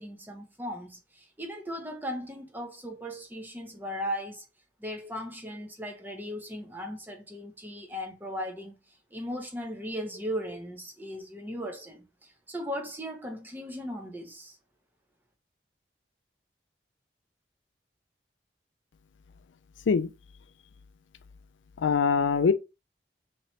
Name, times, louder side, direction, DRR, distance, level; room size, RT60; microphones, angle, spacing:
voice 1, 0.0-4.4 4.8-8.8 9.1-14.6, equal, 10° right, 0.7 m, -37 dB
voice 2, 21.8-22.5, left 5 dB, 90° left, 0.4 m, -23 dB
3.0 x 2.9 x 4.2 m
head